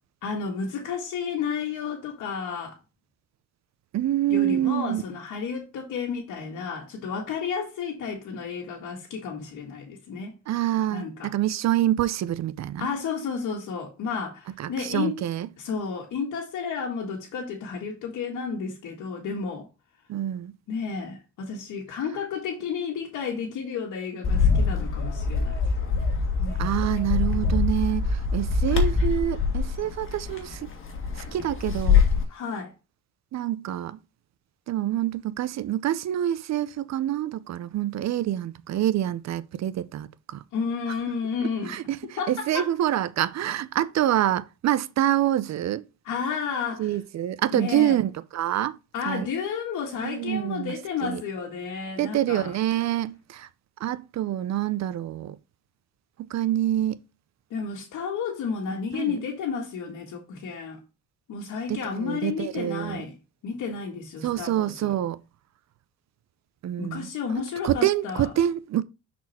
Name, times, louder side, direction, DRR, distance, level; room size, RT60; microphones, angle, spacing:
voice 1, 0.2-2.8 4.3-10.4 10.9-11.3 12.8-15.2 15.6-19.7 20.7-25.7 26.4-26.7 32.3-32.7 40.5-41.8 42.2-42.7 46.0-47.0 47.5-48.0 48.9-52.6 57.5-60.8 61.3-63.1 63.4-64.9 66.8-68.3, left 6 dB, 80° left, 1.7 m, -32 dB
voice 2, 3.9-5.0 10.5-12.9 14.6-15.5 20.1-20.5 26.6-30.7 31.2-32.0 33.3-34.0 34.7-40.4 41.7-42.0 42.3-45.8 46.8-48.8 49.1-49.3 50.0-50.7 51.0-51.2 52.0-53.5 53.8-55.4 56.2-57.0 59.0-59.2 61.7-63.0 64.2-65.2 66.6-67.1 67.6-68.8, right 12 dB, 60° right, 0.6 m, -26 dB
Bird, 24.2-32.2, left 5 dB, 45° left, 1.9 m, -24 dB
6.2 x 4.3 x 4.2 m
cardioid pair, 90°, 30 cm